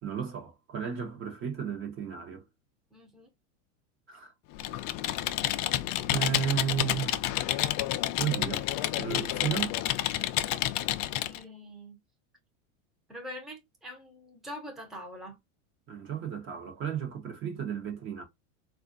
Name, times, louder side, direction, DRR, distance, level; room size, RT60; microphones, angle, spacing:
voice 1, 0.0-2.4 4.1-4.3 6.1-7.2 8.2-8.7 9.0-9.8 15.9-18.2, right 8 dB, 35° right, 0.9 m, -33 dB
voice 2, 2.9-3.3 11.2-12.0 13.1-15.4, equal, ahead, 0.7 m, -44 dB
Computer keyboard, 4.5-11.4, left 14 dB, 45° left, 0.4 m, -30 dB
3.5 x 2.4 x 2.4 m
supercardioid pair, 130°, 37 cm